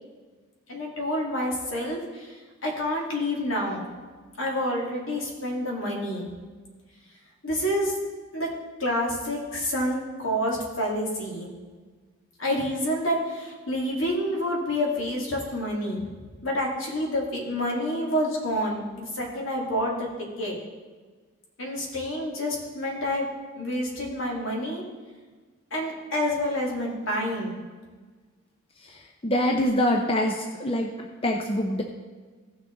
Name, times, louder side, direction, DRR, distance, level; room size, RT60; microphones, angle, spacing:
voice 1, 0.7-2.3 2.6-3.8 4.4-6.3 7.4-7.9 8.3-8.5 8.8-11.5 12.4-16.0 16.4-20.1 20.4-20.6 21.6-23.3 23.6-24.8 25.7-27.6, equal, 70° left, -2 dB, 2.5 m, -28 dB
voice 2, 29.2-31.8, left 1 dB, 25° left, 2 dB, 0.6 m, -25 dB
16.0 x 6.1 x 3.9 m, 1.4 s
head